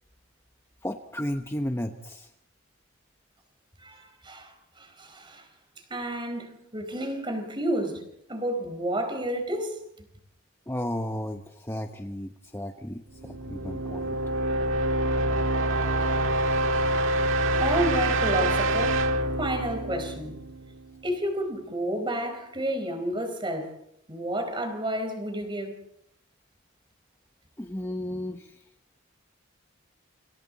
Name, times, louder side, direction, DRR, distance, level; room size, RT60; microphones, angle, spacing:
voice 1, 0.8-2.3 10.7-14.1 27.6-28.5, left 1 dB, 10° left, 1.0 m, -33 dB
voice 2, 3.8-4.5 4.8-5.5 5.9-8.0 8.3-9.8 17.5-19.1 19.4-20.4 21.0-23.8 24.1-25.8, right 1 dB, 25° right, 4.3 m, -30 dB
sound 1, 13.2-21.0, right 1 dB, 70° right, 1.6 m, -26 dB
29.0 x 27.5 x 4.1 m
head